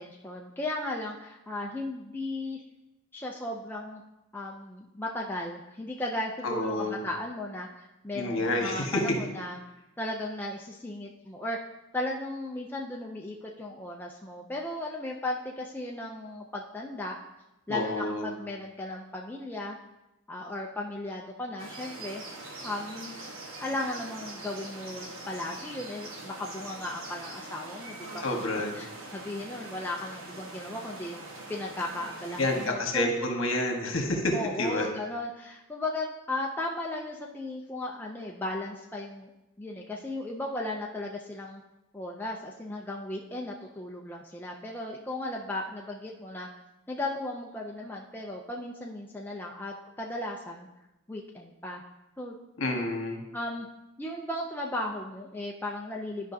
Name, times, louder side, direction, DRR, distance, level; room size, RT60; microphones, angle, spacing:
voice 1, 0.0-2.6 3.1-4.0 4.3-9.6 10.0-11.6 11.9-17.2 17.7-19.8 20.3-22.2 22.6-23.2 23.6-28.2 28.5-28.9 29.1-33.1 34.3-39.3 39.6-41.6 41.9-46.5 46.9-50.7 51.1-51.8 52.2-52.4 53.3-53.7 54.0-56.3, left 1 dB, 10° left, -2 dB, 0.4 m, -36 dB
voice 2, 6.4-7.0 8.1-9.2 17.7-18.3 28.2-28.8 32.4-34.9 52.6-53.2, left 1 dB, 60° left, 2 dB, 1.3 m, -29 dB
sound 1, 21.6-32.7, right 2 dB, 70° right, 1.3 m, -43 dB
12.0 x 5.1 x 2.7 m, 0.95 s
head